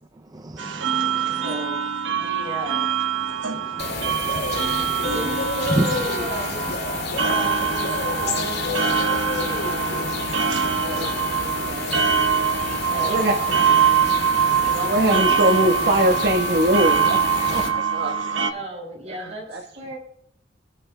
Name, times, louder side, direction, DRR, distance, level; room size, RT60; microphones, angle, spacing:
voice 1, 0.3-1.4 3.5-5.1 5.7-6.0 7.2-7.4 10.7-10.8 14.5-14.6, right 1 dB, 20° right, 7 dB, 0.5 m, -31 dB
sound 1, 0.6-18.5, right 7 dB, 85° right, 1.2 m, -24 dB
voice 2, 1.4-1.8 2.1-3.0 4.9-6.7 7.2-7.9 8.2-10.1 10.6-12.2 12.6-14.1 14.6-15.6 18.5-20.0, right 1 dB, 35° right, 0 dB, 5.8 m, -36 dB
sound 2, 3.8-17.7, left 3 dB, 60° left, 2.2 m, -29 dB
voice 3, 13.0-13.6 14.8-18.2 19.2-19.6, right 1 dB, 65° right, 1 dB, 1.3 m, -22 dB
25.5 x 11.0 x 2.2 m, 0.70 s
head